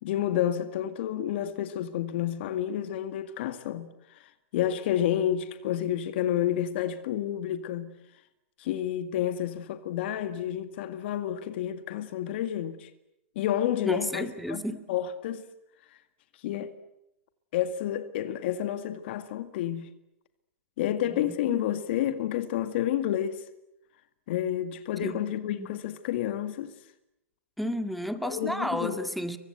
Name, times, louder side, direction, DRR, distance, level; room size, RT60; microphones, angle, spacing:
voice 1, 0.0-7.9 8.6-12.9 13.4-14.6 14.9-15.5 16.4-16.7 17.5-19.9 20.8-23.5 24.3-26.7 28.2-29.0, left 11 dB, 55° left, 2.0 m, -30 dB
voice 2, 13.8-14.8 20.9-21.6 25.0-25.8 27.6-29.4, equal, ahead, 2.0 m, -33 dB
29.5 x 24.0 x 8.1 m
hypercardioid pair, 115°, 7 cm